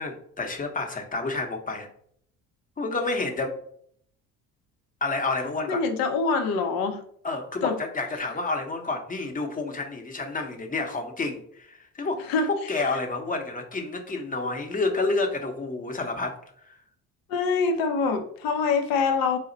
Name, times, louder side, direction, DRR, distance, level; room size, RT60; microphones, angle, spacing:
voice 1, 0.0-1.9 2.8-3.6 5.0-5.8 7.2-12.2 12.5-16.3 16.7-16.8, left 3 dB, 25° left, 4 dB, 0.8 m, -29 dB
voice 2, 5.7-7.0 7.6-7.8 12.3-12.5 17.3-19.4, left 4 dB, 75° left, 8 dB, 0.7 m, -24 dB
4.1 x 2.1 x 3.8 m, 0.64 s
supercardioid pair, 90°, 35 cm